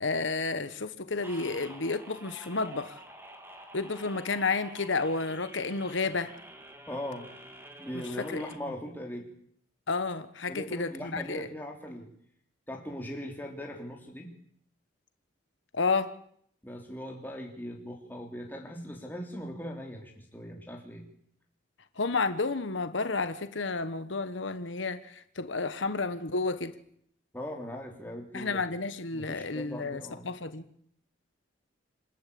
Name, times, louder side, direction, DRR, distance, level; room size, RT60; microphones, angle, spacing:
voice 1, 0.0-3.0 3.7-6.3 8.3-8.4 9.9-11.5 15.7-16.1 22.0-26.7 28.3-30.0 30.2-30.6, left 3 dB, 75° left, 1.3 m, -31 dB
sound 1, 1.2-8.6, right 1 dB, 10° right, 2.2 m, -49 dB
voice 2, 6.9-7.3 7.8-9.3 10.5-12.1 12.7-14.3 16.6-21.1 27.3-28.8 29.1-30.3, equal, 10° left, 3.4 m, -40 dB
27.5 x 12.0 x 8.7 m
head